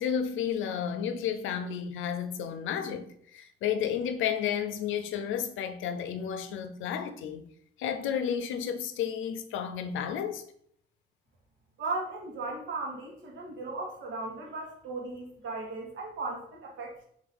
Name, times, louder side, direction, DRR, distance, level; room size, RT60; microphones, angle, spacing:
voice 1, 0.0-7.5 7.8-10.4, left 8 dB, 80° left, 0.5 m, -32 dB
voice 2, 11.8-17.0, right 3 dB, 70° right, 1.7 m, -36 dB
3.5 x 3.2 x 3.8 m
cardioid pair, 90°, 20 cm